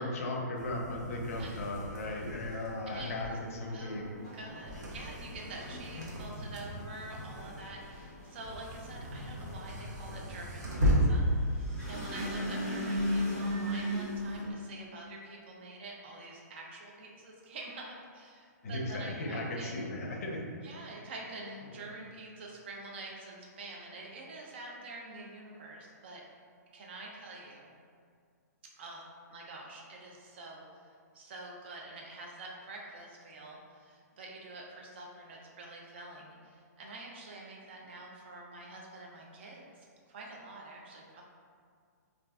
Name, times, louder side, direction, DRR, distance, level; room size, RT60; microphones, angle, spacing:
voice 1, 0.0-4.1 18.6-20.5, left 1 dB, 55° left, 0 dB, 0.5 m, -36 dB
sound 1, 0.5-14.4, equal, 75° right, 0.7 m, -36 dB
voice 2, 2.9-3.4 3.7-19.9 20.6-26.2 26.7-27.7 28.8-41.2, right 2 dB, 40° right, -1 dB, 0.4 m, -47 dB
sound 2, 4.1-14.5, equal, 5° left, 0.7 m, -37 dB
2.4 x 2.1 x 3.5 m, 2.1 s
hypercardioid pair, 170°, 10 cm